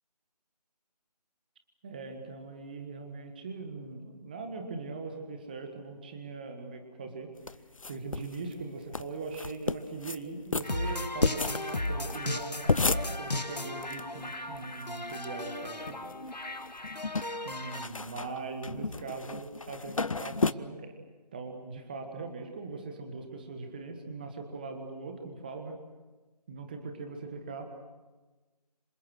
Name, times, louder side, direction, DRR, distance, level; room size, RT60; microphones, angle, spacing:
voice 1, 1.8-7.3 7.9-16.1 17.4-20.9 21.3-25.7 26.5-27.7, right 3 dB, 15° right, 5 dB, 1.5 m, -40 dB
sound 1, 7.5-8.4 8.6-8.7 8.9-9.0 9.3-10.2 10.5-14.0 14.3-14.4 14.5-15.2 15.7-16.3 16.6-20.5, left 3 dB, 50° left, 0.7 m, -32 dB
sound 2, 10.6-17.9, left 2 dB, 80° left, 1.9 m, -36 dB
26.5 x 25.0 x 6.4 m, 1.2 s
figure-of-eight pair, 165°, 21 cm